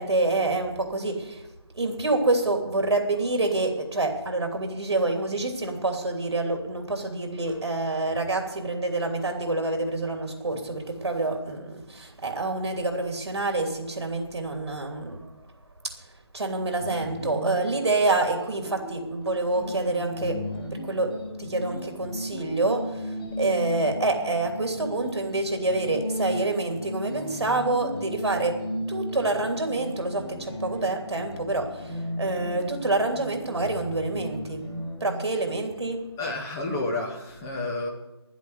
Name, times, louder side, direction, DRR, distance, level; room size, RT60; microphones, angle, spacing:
voice 1, 0.0-1.4 1.7-15.3 15.8-15.9 16.3-34.7 35.0-36.1, right 2 dB, 70° right, 4 dB, 2.9 m, -27 dB
sound 1, 16.8-35.2, equal, 60° left, 6.4 m, -36 dB
voice 2, 36.2-37.9, left 2 dB, 5° left, 0 dB, 0.6 m, -30 dB
11.0 x 8.2 x 9.4 m, 0.99 s
figure-of-eight pair, 175°, 14 cm